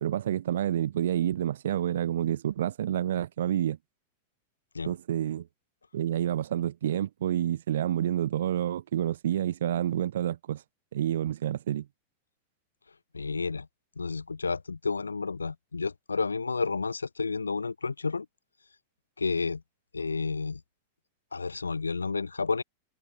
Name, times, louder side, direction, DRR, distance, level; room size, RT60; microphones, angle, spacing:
voice 1, 0.0-3.8 4.8-5.5 5.9-10.6 10.9-11.9, right 11 dB, 60° right, 0.8 m, -28 dB
voice 2, 13.1-13.7 14.0-18.3 19.2-19.6 19.9-20.6 21.3-22.6, left 4 dB, 75° left, 0.7 m, -31 dB
figure-of-eight pair, 90°, 0 cm